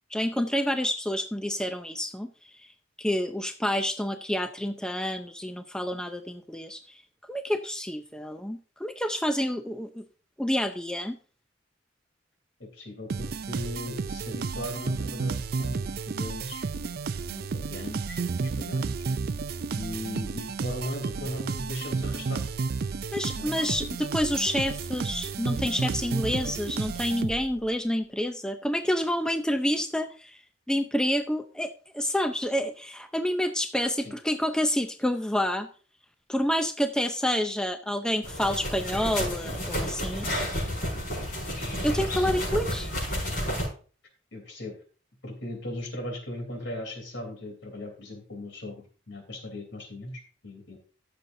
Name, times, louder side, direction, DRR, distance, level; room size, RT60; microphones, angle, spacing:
voice 1, 0.1-2.3 2.6-2.7 3.0-7.0 7.3-10.0 10.4-11.2 23.1-30.4 30.7-35.7 36.3-40.4 41.8-42.9, equal, 5° left, 7 dB, 0.5 m, -28 dB
voice 2, 12.6-18.9 19.8-22.5 23.3-23.8 34.0-34.1 44.3-44.8 45.2-50.8, left 1 dB, 70° left, 4 dB, 3.3 m, -38 dB
sound 1, 13.1-27.7, right 4 dB, 50° right, 0.4 m, -32 dB
sound 2, 38.2-43.7, equal, 50° left, 5.8 m, -31 dB
15.5 x 6.9 x 2.6 m, 0.39 s
head